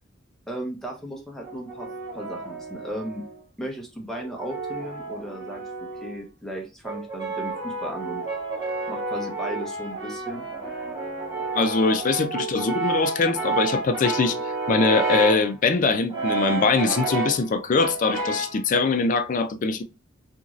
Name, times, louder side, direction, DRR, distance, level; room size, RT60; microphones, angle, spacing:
voice 1, 0.5-3.2 3.6-8.2 8.9-10.5, equal, ahead, 0.7 m, -36 dB
Brass instrument, 1.4-3.4 4.1-6.2 6.8-15.5 16.1-17.5 17.8-18.6, right 3 dB, 20° right, 1.7 m, -30 dB
voice 2, 11.6-14.4 14.7-19.8, left 4 dB, 40° left, 0.4 m, -22 dB
2.9 x 2.7 x 2.4 m
head